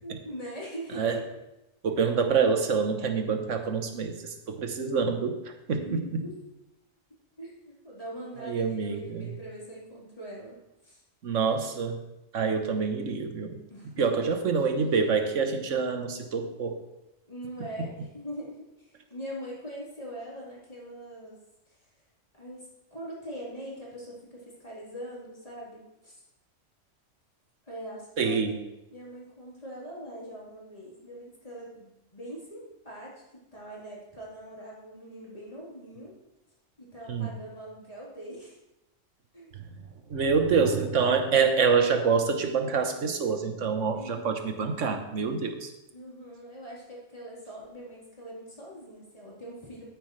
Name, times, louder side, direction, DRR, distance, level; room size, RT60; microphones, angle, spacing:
voice 1, 0.0-1.2 1.9-2.0 5.7-6.3 7.4-10.6 10.8-11.0 13.7-14.3 17.3-21.4 21.7-21.9 22.4-26.2 27.7-28.5 28.9-33.1 33.5-36.1 36.8-38.6 39.3-39.6 43.9-44.3 45.9-49.8, equal, 30° left, -7 dB, 4.0 m, -42 dB
voice 2, 1.8-5.8 6.1-6.2 8.4-9.3 11.2-12.0 12.3-16.8 28.2-28.6 37.1-37.3 39.5-39.7 40.1-45.7, right 5 dB, 80° right, 6 dB, 1.4 m, -26 dB
13.0 x 9.4 x 3.3 m, 0.92 s
omnidirectional pair, 1.3 m